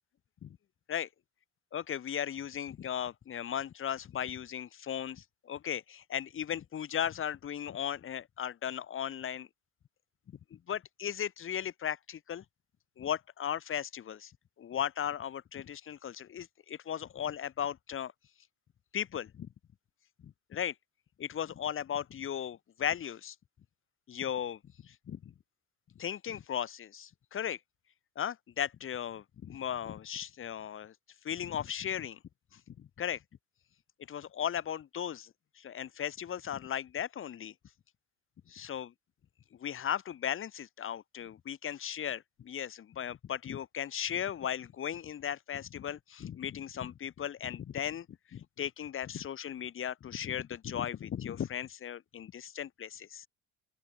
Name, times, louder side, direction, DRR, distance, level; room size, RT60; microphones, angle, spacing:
voice 1, 1.7-9.5 10.5-12.4 13.0-14.3 14.6-18.1 18.9-19.5 20.2-20.7 21.2-23.3 24.1-25.3 25.9-27.6 28.1-30.9 31.2-32.2 32.5-33.2 34.1-37.5 38.5-38.9 39.5-53.3, left 9 dB, 35° left, 1.2 m, -37 dB
open air
cardioid pair, 120°, 36 cm